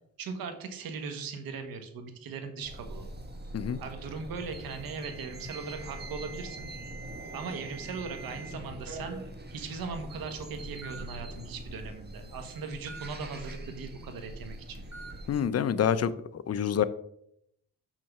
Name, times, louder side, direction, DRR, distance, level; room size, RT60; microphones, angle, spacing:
voice 1, 0.2-3.1 3.8-6.7 7.3-9.2 9.5-14.8, right 5 dB, 85° right, 7 dB, 1.4 m, -39 dB
sound 1, 2.6-15.4, right 1 dB, 30° right, 1.4 m, -43 dB
Alarm, 4.5-8.5 8.8-9.3 10.1-10.2 10.8-11.0 12.9-13.1 14.9-15.1, right 4 dB, 50° right, 3.6 m, -46 dB
voice 2, 15.3-16.1 16.5-16.8, left 8 dB, 45° left, 13 dB, 0.7 m, -26 dB
6.6 x 6.0 x 5.9 m, 0.75 s
cardioid pair, 95°, 34 cm